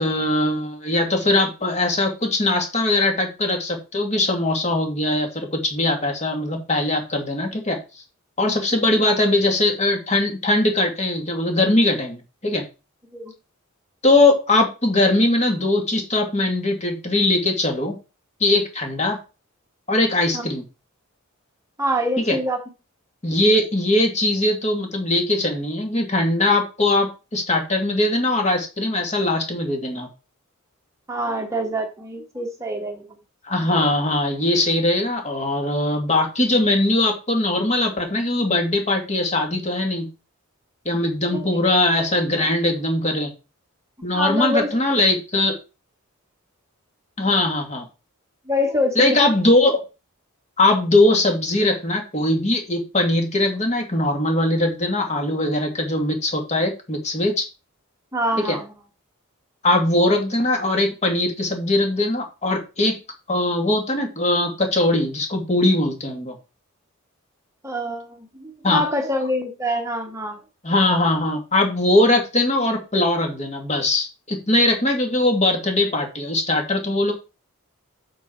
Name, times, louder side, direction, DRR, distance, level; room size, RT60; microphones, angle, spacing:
voice 1, 0.0-7.8 8.4-12.6 14.0-17.9 18.4-19.2 19.9-20.6 22.2-22.4 23.2-30.1 33.5-40.1 40.9-43.3 44.0-45.6 47.2-47.8 49.0-49.8 50.6-57.5 58.5-58.6 59.6-63.0 63.3-66.3 68.6-68.8 70.6-77.1, left 2 dB, 30° left, 3 dB, 2.2 m, -20 dB
voice 2, 21.8-22.6 31.1-33.1 41.3-41.6 44.1-44.8 48.5-49.2 58.1-58.7 67.6-70.4, left 1 dB, 15° right, 3 dB, 1.1 m, -25 dB
8.1 x 6.4 x 4.4 m, 0.30 s
head